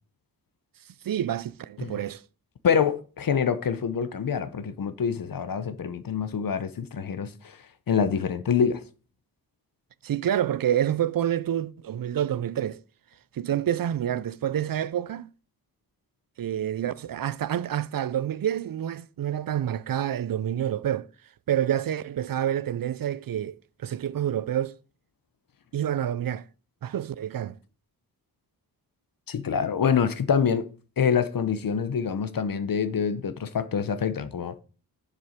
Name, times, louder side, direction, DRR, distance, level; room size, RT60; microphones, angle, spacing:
voice 1, 1.0-2.2 10.0-12.8 13.3-15.3 16.4-21.1 21.5-24.8 25.7-26.4 26.8-27.6, right 10 dB, 60° right, 0.5 m, -28 dB
voice 2, 2.6-7.6 7.9-8.8 29.3-30.7 31.0-34.5, left 7 dB, 60° left, 0.8 m, -26 dB
7.1 x 6.8 x 5.1 m
wide cardioid pair, 100°, 39 cm